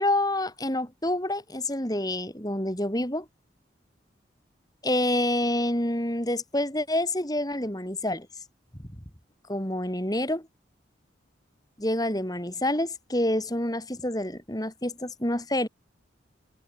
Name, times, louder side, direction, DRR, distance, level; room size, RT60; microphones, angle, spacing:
voice 1, 0.0-3.2 4.8-8.3 9.5-10.5 11.8-15.7, left 1 dB, 20° left, 5.1 m, -27 dB
head